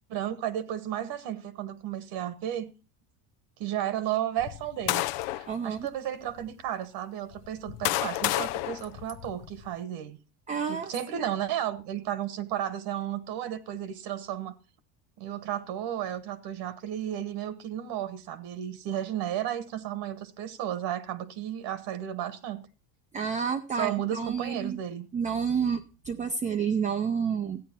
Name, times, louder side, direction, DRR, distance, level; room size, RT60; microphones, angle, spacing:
voice 1, 0.1-2.7 3.6-5.1 5.3-10.2 10.7-14.6 15.2-22.6 23.7-25.1, right 11 dB, 60° right, 1.3 m, -33 dB
sound 1, 4.4-5.5 6.3-6.4 7.3-9.7, left 17 dB, 80° left, 0.7 m, -31 dB
voice 2, 5.5-5.9 10.5-11.3 23.1-24.8 25.1-27.6, right 6 dB, 15° right, 0.5 m, -30 dB
14.0 x 9.2 x 4.4 m
cardioid pair, 145°, 45 cm